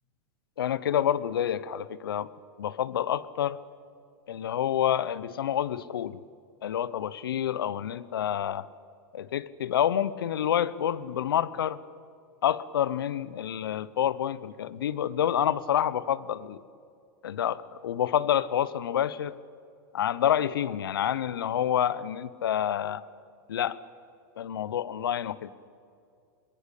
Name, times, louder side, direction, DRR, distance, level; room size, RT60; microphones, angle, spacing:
voice 1, 0.6-2.3 2.6-3.6 4.3-6.2 6.6-8.7 9.1-11.8 12.4-16.6 17.2-19.4 19.9-23.0 23.5-23.8 24.4-25.5, left 10 dB, 85° left, 18 dB, 0.8 m, -28 dB
24.0 x 21.0 x 8.4 m, 2.5 s
hypercardioid pair, 105°, 12 cm